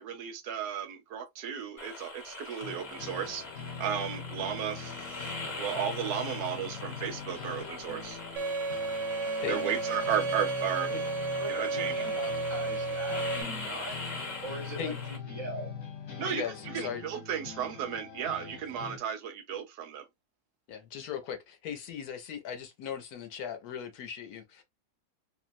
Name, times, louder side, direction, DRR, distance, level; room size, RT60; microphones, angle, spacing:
voice 1, 0.0-3.4 3.8-8.2 9.5-10.9 11.5-11.9 16.2-16.4 16.7-20.1, right 8 dB, 70° right, 1.0 m, -34 dB
sound 1, 1.8-15.2, left 3 dB, 35° left, 0.8 m, -42 dB
sound 2, 2.6-19.0, left 6 dB, 50° left, 1.2 m, -43 dB
Bowed string instrument, 8.4-13.4, right 3 dB, 85° right, 1.3 m, -32 dB
voice 2, 11.3-15.7, right 1 dB, 40° right, 0.3 m, -41 dB
voice 3, 16.3-17.0 20.7-24.6, left 8 dB, 70° left, 1.0 m, -38 dB
3.0 x 2.0 x 2.5 m
omnidirectional pair, 1.9 m